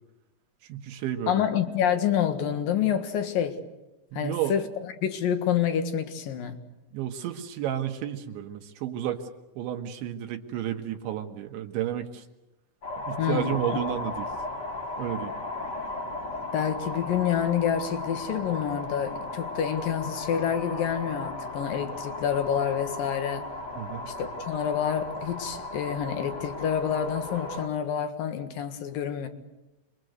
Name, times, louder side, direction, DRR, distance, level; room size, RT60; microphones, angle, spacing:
voice 1, 0.6-1.5 4.1-4.6 6.9-9.2 9.6-12.3 13.1-14.3 15.0-15.3 23.8-24.1, right 11 dB, 75° right, 4 dB, 3.6 m, -31 dB
voice 2, 1.3-3.6 4.1-4.6 5.0-6.6 13.2-13.6 16.5-23.5 24.1-29.3, left 9 dB, 60° left, 8 dB, 2.8 m, -28 dB
sound 1, 12.8-27.7, left 2 dB, 30° left, 2.1 m, -36 dB
27.5 x 22.5 x 8.0 m, 0.99 s
omnidirectional pair, 5.5 m